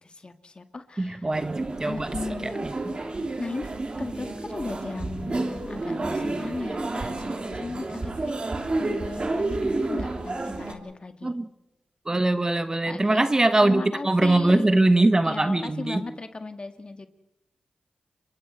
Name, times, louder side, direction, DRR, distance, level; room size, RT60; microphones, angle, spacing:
voice 1, 0.0-1.3 1.9-2.7 2.9-8.4 8.8-11.4 12.9-13.3 13.6-14.8 15.2-17.1, left 3 dB, 40° left, 8 dB, 1.9 m, -36 dB
voice 2, 1.0-2.1 2.4-2.7 11.2-11.5 12.1-16.0, right 2 dB, 25° right, 10 dB, 1.4 m, -22 dB
sound 1, 1.3-10.7, right 2 dB, 45° right, 3.0 m, -30 dB
29.5 x 23.0 x 4.4 m, 0.90 s
cardioid pair, 50°, 3 cm